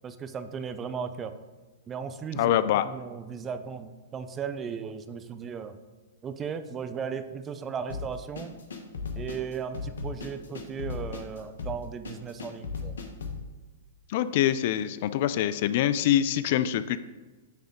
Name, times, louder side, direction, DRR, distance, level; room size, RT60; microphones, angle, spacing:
voice 1, 0.0-1.3 1.9-2.5 2.8-5.8 6.2-8.5 9.2-12.9, right 6 dB, 25° right, 10 dB, 0.5 m, -36 dB
voice 2, 2.4-2.9 14.1-17.0, left 11 dB, 55° left, 14 dB, 0.3 m, -24 dB
sound 1, 7.9-13.4, left 4 dB, 75° left, 1.0 m, -36 dB
9.0 x 3.5 x 3.7 m, 1.3 s
hypercardioid pair, 115°, 0 cm